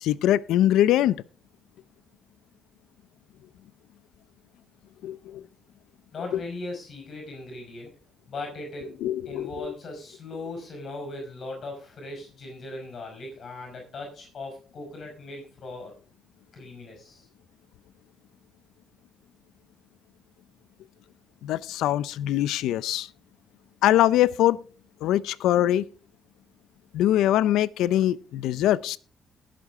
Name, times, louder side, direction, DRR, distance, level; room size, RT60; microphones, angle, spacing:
voice 1, 0.0-1.1 5.0-5.4 9.0-9.5 21.4-23.1 23.8-24.6 25.0-25.9 26.9-29.0, left 13 dB, 90° left, 0.5 m, -22 dB
voice 2, 6.1-7.9 8.3-9.0 9.3-15.9 16.5-17.3, left 2 dB, 55° left, 5.3 m, -38 dB
19.0 x 7.7 x 3.6 m
cardioid pair, 90°, 0 cm